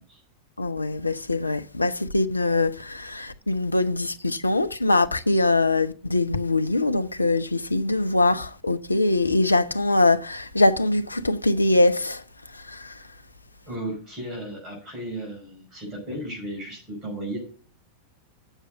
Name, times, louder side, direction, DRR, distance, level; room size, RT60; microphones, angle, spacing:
voice 1, 0.6-12.2 12.5-13.1, left 2 dB, 80° left, 0.5 m, -23 dB
voice 2, 13.7-17.4, right 1 dB, 25° right, 5.5 m, -34 dB
8.1 x 6.4 x 6.5 m
figure-of-eight pair, 90°, 0 cm